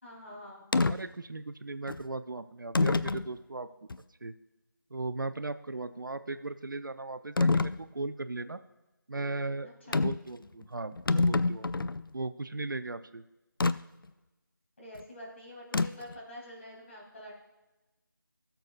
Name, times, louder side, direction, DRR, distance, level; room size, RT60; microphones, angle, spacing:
voice 1, 0.0-0.6 9.9-10.0 14.8-17.4, left 1 dB, 35° left, -4 dB, 3.2 m, -46 dB
sound 1, 0.7-1.0 1.9-2.0 2.7-3.3 3.9-4.0 7.4-7.8 9.9-10.3 10.6-10.7 10.9-12.0 13.6-13.8 15.7-16.1, left 3 dB, 80° left, 0.4 m, -26 dB
voice 2, 0.9-3.7 4.2-4.3 4.9-8.6 9.1-9.7 10.0-11.9 12.1-13.2, right 2 dB, 65° right, 12 dB, 0.5 m, -37 dB
17.5 x 6.8 x 2.5 m, 1.0 s
figure-of-eight pair, 175°, 11 cm